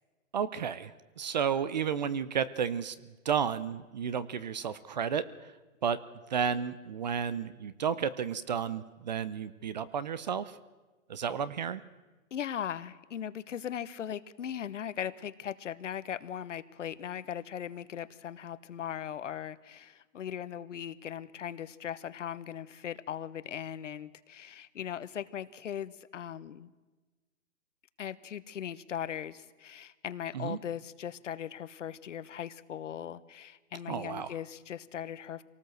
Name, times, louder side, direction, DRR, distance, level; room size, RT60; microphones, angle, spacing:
voice 1, 0.3-3.0 3.2-5.2 5.8-6.0 6.3-10.5 11.1-11.8 30.3-30.6 33.9-34.3, right 7 dB, 30° right, 16 dB, 0.6 m, -32 dB
voice 2, 12.3-26.7 28.0-35.4, left 9 dB, 60° left, 15 dB, 1.1 m, -39 dB
25.0 x 18.5 x 7.8 m, 1.2 s
hypercardioid pair, 160°, 41 cm